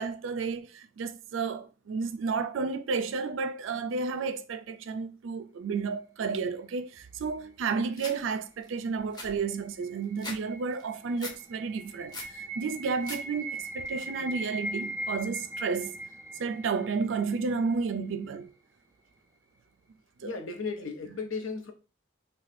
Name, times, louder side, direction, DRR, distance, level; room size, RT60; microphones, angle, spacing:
voice 1, 0.0-16.0 16.4-18.5 20.2-20.3, right 5 dB, 70° right, 0.4 m, -32 dB
sound 1, 8.0-8.2 8.6-8.7 9.0-10.4 10.7-11.4 11.8-12.3 12.8-13.2 13.5-14.0, left 2 dB, 20° left, 0.7 m, -41 dB
sound 2, 9.1-18.0, right 1 dB, 15° right, 0.6 m, -40 dB
voice 2, 20.2-21.7, left 4 dB, 80° left, 0.7 m, -35 dB
2.6 x 2.2 x 4.0 m
head